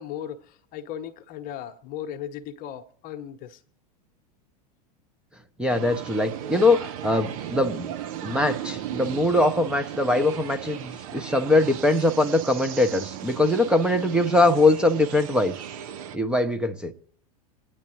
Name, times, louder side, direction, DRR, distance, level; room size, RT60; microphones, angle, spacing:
voice 1, 0.0-3.6, left 10 dB, 40° left, 1.0 m, -37 dB
voice 2, 5.6-7.9 8.2-15.5 16.1-16.9, left 2 dB, 5° right, 0.9 m, -22 dB
sound 1, 5.7-16.2, right 10 dB, 55° right, 1.0 m, -36 dB
27.0 x 9.8 x 3.1 m
figure-of-eight pair, 90°, 21 cm